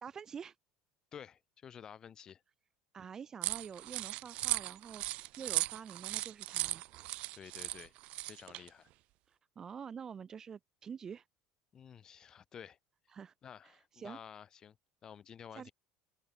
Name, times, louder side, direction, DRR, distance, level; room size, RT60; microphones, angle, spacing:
voice 1, 0.0-0.5 2.9-6.8 9.3-11.2 13.1-13.3 13.6-14.2 15.5-15.7, right 7 dB, 20° right, 2.5 m, -47 dB
voice 2, 1.1-2.4 7.3-7.9 8.2-8.9 11.7-12.8 13.4-14.8 15.0-15.7, left 8 dB, 25° left, 4.6 m, -51 dB
sound 1, 3.4-8.7, right 19 dB, 50° right, 1.3 m, -37 dB
cardioid pair, 170°, 3 cm